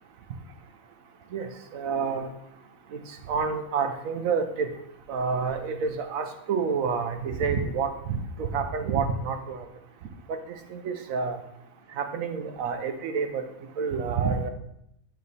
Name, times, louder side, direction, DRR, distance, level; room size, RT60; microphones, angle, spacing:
voice 1, 1.3-2.3 2.9-3.0 3.3-4.7 5.1-9.6 10.3-10.4 10.7-11.4 12.0-13.4 13.8-14.5, right 5 dB, 85° right, 7 dB, 1.1 m, -28 dB
9.6 x 3.2 x 4.1 m, 0.77 s
omnidirectional pair, 1.4 m